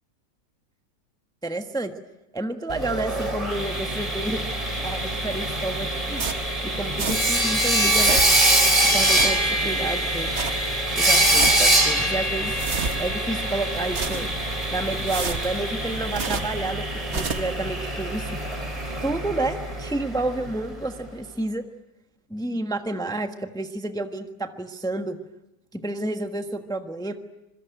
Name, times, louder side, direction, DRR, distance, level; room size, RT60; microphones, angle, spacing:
voice 1, 1.4-1.9 2.3-4.4 4.8-6.2 6.6-8.2 8.9-10.3 10.9-12.6 13.0-14.3 14.7-16.8 17.1-18.4 19.0-21.6 22.3-25.2 25.7-27.1, right 2 dB, 5° left, 7 dB, 1.1 m, -30 dB
Sawing, 2.7-20.5, right 1 dB, 20° right, 3.8 m, -24 dB
sound 1, 6.2-7.5 7.7-8.5 8.9-9.7 10.1-10.7 11.1-11.8 12.2-13.2 13.7-14.5 14.9-16.6 16.9-17.6, right 5 dB, 40° right, 1.5 m, -32 dB
26.5 x 22.5 x 9.1 m, 0.96 s
omnidirectional pair, 2.0 m